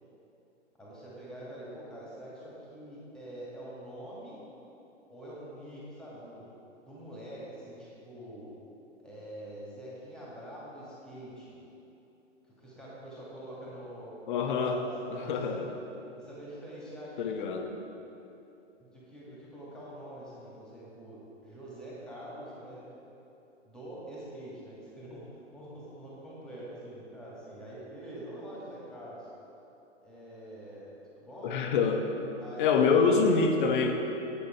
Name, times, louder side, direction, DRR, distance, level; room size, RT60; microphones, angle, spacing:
voice 1, 0.8-4.4 5.1-6.5 6.9-8.5 9.0-11.6 12.6-15.8 16.2-17.7 18.8-22.9 23.7-25.2 25.5-29.3 30.0-31.7 32.4-33.1, right 1 dB, ahead, -7 dB, 1.9 m, -45 dB
voice 2, 14.3-14.8 15.1-15.7 17.2-17.7 31.4-32.0 32.6-33.9, left 5 dB, 40° left, 4 dB, 0.9 m, -25 dB
8.5 x 6.8 x 4.5 m, 3.0 s
figure-of-eight pair, 120°, 37 cm